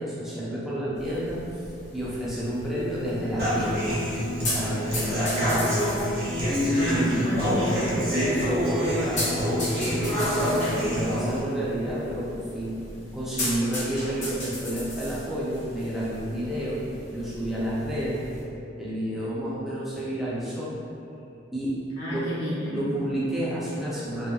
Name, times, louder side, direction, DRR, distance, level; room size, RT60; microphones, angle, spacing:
voice 1, 0.0-1.4 1.9-3.9 4.5-5.7 6.1-6.2 6.5-7.3 8.1-12.8 13.1-16.8 17.1-18.2 18.8-20.7 21.5-21.8 22.1-22.3 22.7-24.3, equal, ahead, -9 dB, 0.4 m, -30 dB
sound 1, 1.0-18.4, left 1 dB, 35° left, 0.7 m, -37 dB
Human voice / Acoustic guitar, 3.4-11.4, equal, 50° right, 0.7 m, -27 dB
voice 2, 6.7-8.0 22.0-22.8, left 1 dB, 70° left, -9 dB, 0.9 m, -30 dB
2.7 x 2.6 x 2.3 m, 2.6 s
head